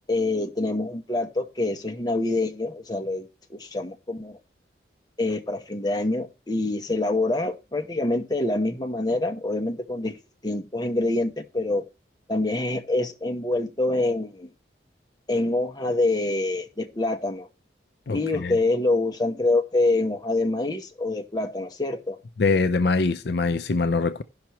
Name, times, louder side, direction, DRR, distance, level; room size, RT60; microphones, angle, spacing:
voice 1, 0.1-4.4 5.2-11.8 12.3-14.5 15.3-17.5 18.1-22.2, left 2 dB, 20° left, 0.8 m, -26 dB
voice 2, 18.1-18.6 22.4-24.2, left 4 dB, 60° left, 0.5 m, -23 dB
16.5 x 5.8 x 3.0 m
head